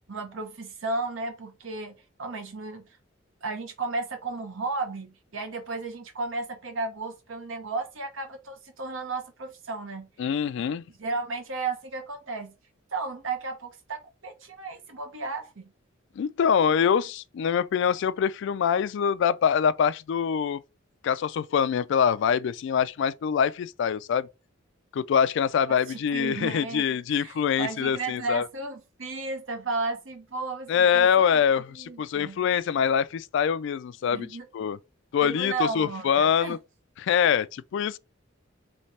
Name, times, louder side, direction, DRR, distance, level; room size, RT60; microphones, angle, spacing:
voice 1, 0.1-2.9 3.4-10.1 10.9-12.5 12.9-15.6 25.7-31.4 31.7-32.4 34.0-34.5 35.2-36.6, right 3 dB, 80° right, 1.0 m, -34 dB
voice 2, 10.2-10.8 16.2-20.6 21.0-24.3 24.9-28.5 30.7-34.3 34.5-34.8 35.1-36.6 37.0-38.0, left 7 dB, 65° left, 0.3 m, -24 dB
3.3 x 3.2 x 4.1 m
head